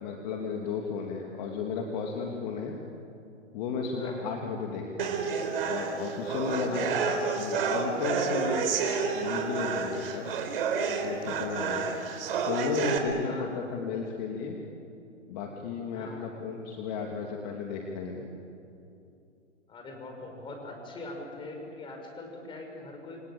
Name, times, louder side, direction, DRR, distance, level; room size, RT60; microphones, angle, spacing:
voice 1, 0.0-2.7 3.5-5.2 5.7-7.0 7.4-8.7 9.1-10.2 11.0-11.9 12.5-14.6 15.3-18.3, left 5 dB, 35° left, 1 dB, 2.9 m, -34 dB
voice 2, 4.0-4.3 6.7-7.2 11.9-12.0 13.3-13.7 15.9-16.4 19.7-23.2, left 2 dB, 15° left, 3 dB, 5.6 m, -42 dB
sound 1, 5.0-13.0, right 5 dB, 50° right, 4.1 m, -30 dB
28.5 x 23.0 x 9.0 m, 2.7 s
hypercardioid pair, 140°, 37 cm